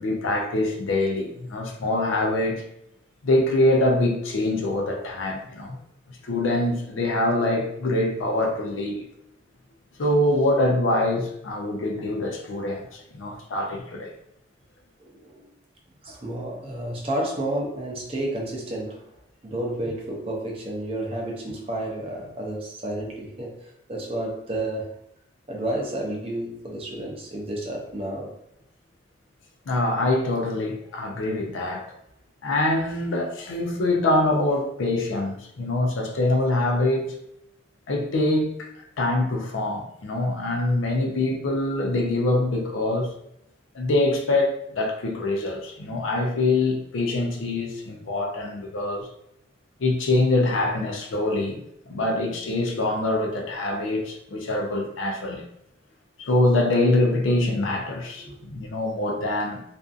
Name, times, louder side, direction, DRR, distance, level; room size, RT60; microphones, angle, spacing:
voice 1, 0.0-2.6 3.2-5.8 6.2-9.0 10.0-14.1 29.7-31.8 32.4-37.1 37.9-38.7 39.0-43.1 43.7-49.1 49.8-51.6 51.9-55.5 56.2-59.6, left 2 dB, 85° left, 3 dB, 0.5 m, -24 dB
voice 2, 15.0-15.5 16.0-19.1 19.4-24.9 25.5-28.3 58.2-58.4, right 1 dB, 30° right, -1 dB, 0.5 m, -31 dB
2.5 x 2.4 x 2.4 m, 0.76 s
head